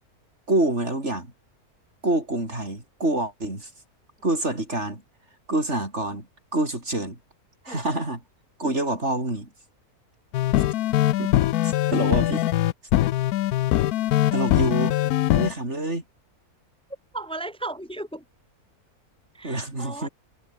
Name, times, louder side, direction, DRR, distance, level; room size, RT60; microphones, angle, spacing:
voice 1, 0.5-1.3 2.0-3.7 4.2-5.0 5.5-6.3 6.5-7.2 7.6-8.2 8.6-9.5 11.2-11.3 11.6-12.5 14.3-15.0 15.3-16.0 19.4-20.1, right 2 dB, 45° right, 6.0 m, -26 dB
Tough fight, 10.3-15.5, left 14 dB, 85° left, 1.1 m, -22 dB
voice 2, 17.1-18.2 19.3-20.1, right 2 dB, 5° left, 2.4 m, -35 dB
omnidirectional pair, 1.6 m